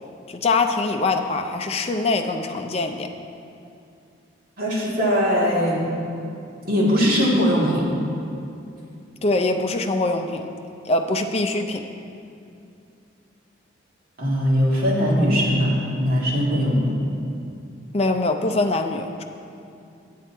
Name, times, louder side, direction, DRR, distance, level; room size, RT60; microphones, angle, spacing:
voice 1, 0.3-3.1 9.2-10.5 10.8-11.8 17.9-19.2, left 2 dB, 30° left, 5 dB, 0.5 m, -23 dB
voice 2, 4.6-6.0 6.6-7.9 14.2-16.9, equal, 50° right, -5 dB, 2.1 m, -20 dB
9.3 x 7.6 x 4.4 m, 2.6 s
head